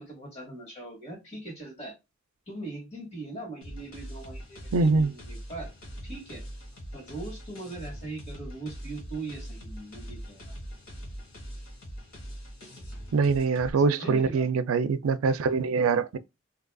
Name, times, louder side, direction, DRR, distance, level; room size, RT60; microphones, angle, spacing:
voice 1, 0.0-1.9 2.5-5.7 6.0-6.4 6.9-10.5 13.8-14.5, right 2 dB, 30° left, 1.9 m, -40 dB
sound 1, 3.6-13.7, equal, 85° left, 1.5 m, -42 dB
voice 2, 4.7-5.1 13.1-16.2, right 4 dB, 85° right, 0.4 m, -24 dB
3.7 x 2.8 x 2.3 m
head